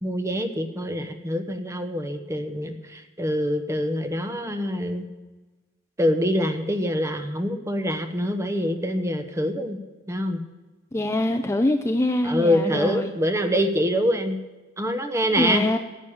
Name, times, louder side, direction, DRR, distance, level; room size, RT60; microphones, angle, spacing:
voice 1, 0.0-5.0 6.0-9.8 10.1-10.4 12.2-14.4 14.8-15.6, equal, 15° right, 7 dB, 1.0 m, -25 dB
voice 2, 10.9-13.1 15.4-15.8, left 1 dB, 15° left, 6 dB, 0.5 m, -24 dB
10.5 x 8.8 x 8.5 m, 1.2 s
head